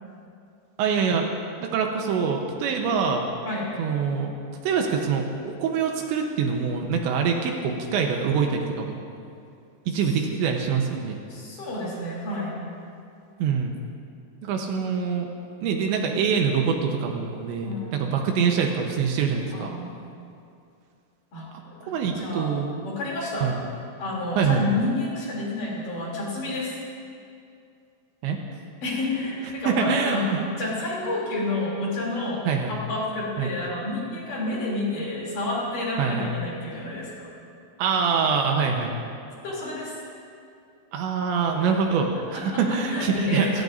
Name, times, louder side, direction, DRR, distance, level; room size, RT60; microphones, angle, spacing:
voice 1, 0.8-1.3 1.6-3.2 3.8-4.3 4.6-9.0 9.9-11.2 13.4-13.7 14.4-15.3 15.6-19.8 21.9-22.7 23.4-23.6 24.4-24.6 28.2-28.4 29.7-30.4 32.5-32.7 33.4-33.5 36.0-36.3 37.8-38.9 40.9-43.6, right 6 dB, 75° right, 2 dB, 3.2 m, -24 dB
voice 2, 11.3-12.6 17.6-18.3 19.5-19.9 21.3-22.5 22.8-23.5 24.0-26.8 28.8-30.3 30.6-37.3 39.4-40.0 41.6-41.7 42.3-42.6 42.9-43.6, left 2 dB, 45° left, -5 dB, 4.4 m, -30 dB
29.5 x 16.0 x 2.7 m, 2.5 s
omnidirectional pair, 5.5 m